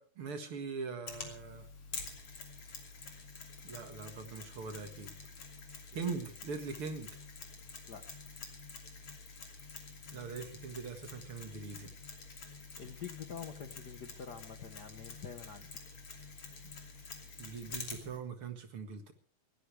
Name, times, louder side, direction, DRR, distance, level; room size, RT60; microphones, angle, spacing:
voice 1, 0.0-1.7 3.6-5.1 5.9-7.1 10.1-11.9 17.4-19.1, right 5 dB, 50° right, 7 dB, 2.2 m, -41 dB
Mechanisms, 1.1-18.2, left 4 dB, 45° left, 3.7 m, -48 dB
voice 2, 12.8-15.7, left 7 dB, 85° left, 7 dB, 0.9 m, -46 dB
22.0 x 17.0 x 3.4 m, 0.41 s
omnidirectional pair, 3.7 m